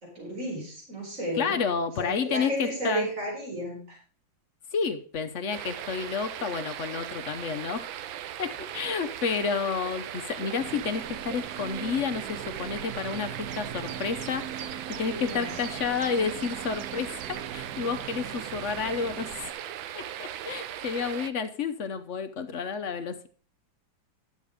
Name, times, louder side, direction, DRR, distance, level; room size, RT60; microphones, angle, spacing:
voice 1, 0.0-1.6 2.0-4.0 14.9-15.5, equal, 40° right, -2 dB, 4.6 m, -33 dB
voice 2, 1.4-3.1 4.7-7.9 8.4-14.5 14.9-19.5 19.9-23.3, left 6 dB, 60° left, 8 dB, 0.8 m, -30 dB
sound 1, 5.5-21.3, right 11 dB, 90° right, 1.5 m, -38 dB
sound 2, 10.6-19.5, right 8 dB, 65° right, 1.2 m, -41 dB
11.0 x 7.4 x 4.9 m, 0.41 s
omnidirectional pair, 2.1 m